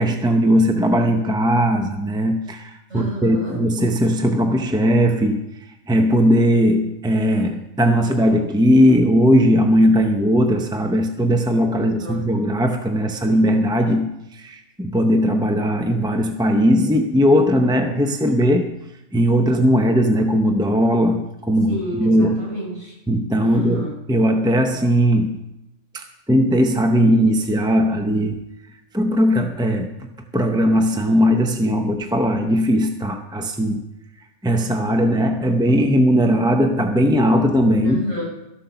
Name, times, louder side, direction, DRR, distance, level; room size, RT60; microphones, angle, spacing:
voice 1, 0.0-5.5 5.9-18.8 19.1-22.4 23.1-25.4 25.9-28.4 28.9-30.0 30.3-33.8 34.4-38.0, equal, 5° right, 4 dB, 0.4 m, -18 dB
voice 2, 2.9-3.6 11.8-12.3 21.7-22.9 23.4-23.9 37.8-38.3, equal, 70° right, -5 dB, 6.3 m, -30 dB
13.0 x 7.8 x 5.7 m, 0.88 s
omnidirectional pair, 1.3 m